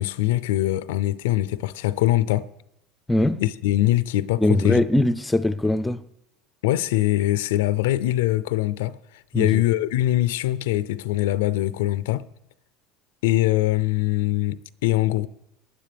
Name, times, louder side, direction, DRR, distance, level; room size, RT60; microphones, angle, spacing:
voice 1, 0.0-2.5 3.4-4.8 6.6-9.0 9.3-12.3 13.2-15.3, left 15 dB, 85° left, 0.4 m, -22 dB
voice 2, 3.1-3.4 4.4-6.0 9.3-9.6, left 1 dB, 10° left, 0.5 m, -21 dB
19.0 x 9.8 x 3.4 m
supercardioid pair, 110°, 0 cm